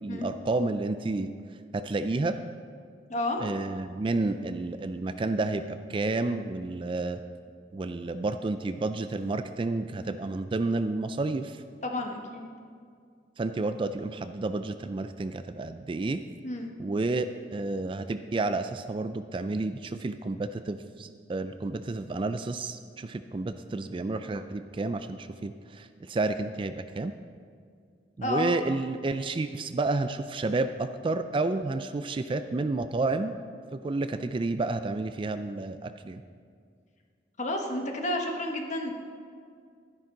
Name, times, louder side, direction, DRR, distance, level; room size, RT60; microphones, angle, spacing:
voice 1, 0.0-1.3 1.7-2.4 3.4-7.2 7.7-11.6 13.4-16.2 16.8-27.1 28.2-33.3 33.7-36.2, right 3 dB, 30° right, 10 dB, 0.3 m, -30 dB
voice 2, 3.1-3.4 11.8-12.5 16.4-16.7 28.2-28.5 37.4-38.9, left 1 dB, 40° left, 2 dB, 1.3 m, -31 dB
12.0 x 10.5 x 3.8 m, 2.2 s
head